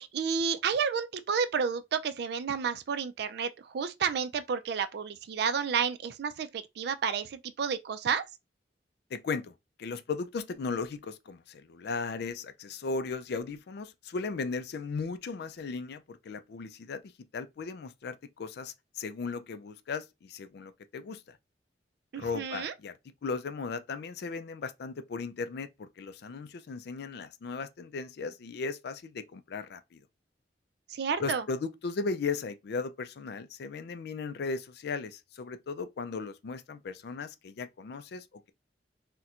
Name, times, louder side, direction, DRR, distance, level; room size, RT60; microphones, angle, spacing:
voice 1, 0.0-8.2 22.1-22.7 30.9-31.4, right 6 dB, 65° right, 0.4 m, -31 dB
voice 2, 9.1-9.5 9.8-17.0 17.3-21.4 22.2-30.0 31.2-38.5, left 4 dB, 65° left, 0.4 m, -36 dB
4.2 x 2.1 x 2.4 m
head